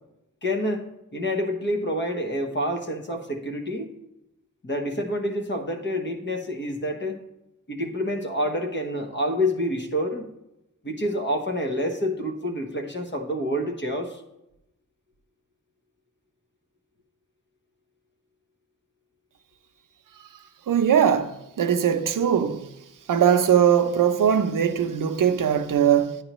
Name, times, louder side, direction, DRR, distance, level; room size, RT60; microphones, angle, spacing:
voice 1, 0.4-3.9 4.6-7.2 7.7-10.3 10.8-14.2, equal, 35° left, 1.0 m, -28 dB
voice 2, 20.7-22.6 23.1-26.2, right 8 dB, 70° right, 0.6 m, -20 dB
10.0 x 9.5 x 3.0 m
wide cardioid pair, 175°, 33 cm